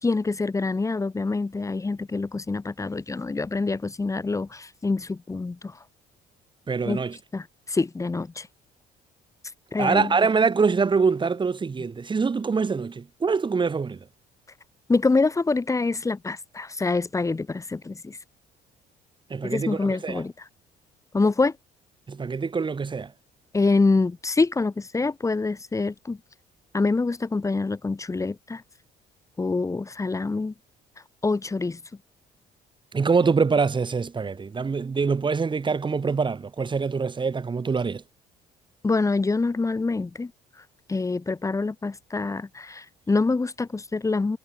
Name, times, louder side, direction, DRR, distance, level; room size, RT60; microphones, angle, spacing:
voice 1, 0.0-5.7 6.9-7.0 7.3-8.5 9.7-10.1 14.9-18.2 19.4-20.3 21.1-21.5 23.5-26.2 26.7-28.6 29.4-30.5 31.2-31.8 38.8-40.3 40.9-44.4, left 3 dB, 20° left, 2.7 m, -25 dB
voice 2, 6.7-7.2 9.8-14.1 19.3-20.2 22.1-23.1 32.9-38.0, right 5 dB, 30° right, 6.1 m, -24 dB
cardioid pair, 110°, 17 cm